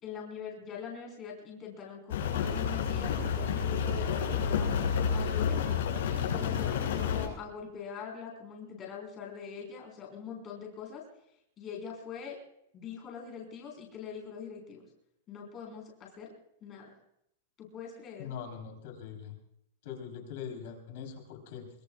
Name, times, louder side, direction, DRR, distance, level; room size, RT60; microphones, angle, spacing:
voice 1, 0.0-4.7 5.1-5.6 6.2-11.0 11.6-12.4 12.7-14.9 15.3-16.3 16.6-17.0 17.6-18.3, left 7 dB, 20° left, -1 dB, 3.9 m, -43 dB
Rain, 2.1-7.3, left 7 dB, 75° left, 6.1 m, -30 dB
voice 2, 18.2-19.4 19.8-21.7, left 7 dB, 50° left, 3 dB, 3.6 m, -42 dB
23.5 x 23.0 x 2.3 m, 0.78 s
supercardioid pair, 175°, 0 cm